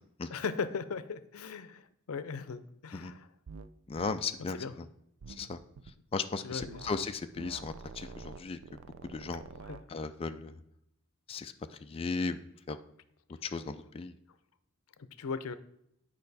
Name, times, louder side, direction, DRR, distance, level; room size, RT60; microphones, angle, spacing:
voice 1, 0.3-1.8 2.1-3.3 4.5-4.7 6.4-6.9 9.6-9.8 15.2-15.6, left 5 dB, 90° left, 14 dB, 0.5 m, -38 dB
sound 1, 3.5-3.7 4.0-4.2 5.2-5.9 6.6-7.1 7.4-9.8, right 5 dB, 75° right, 0.4 m, -47 dB
voice 2, 3.9-4.8 5.4-5.6 6.1-8.6 9.0-9.4 9.9-10.5 11.3-11.5 11.8-12.4 12.7-12.8 13.4-14.1, left 4 dB, 25° left, 8 dB, 0.3 m, -36 dB
8.8 x 5.2 x 4.0 m, 0.75 s
head